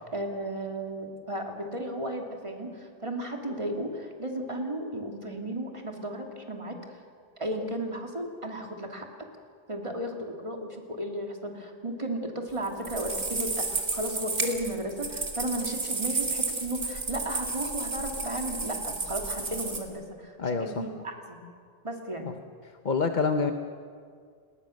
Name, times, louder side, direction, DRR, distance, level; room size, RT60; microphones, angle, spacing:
voice 1, 0.0-7.0 7.4-9.1 9.7-21.4 21.8-22.3, right 1 dB, 30° right, 2 dB, 2.7 m, -34 dB
sound 1, 12.6-19.8, right 3 dB, 80° right, 2.7 m, -32 dB
voice 2, 20.4-20.7 22.8-23.5, left 5 dB, 45° left, 6 dB, 1.1 m, -26 dB
30.0 x 20.0 x 6.5 m, 2.1 s
omnidirectional pair, 1.1 m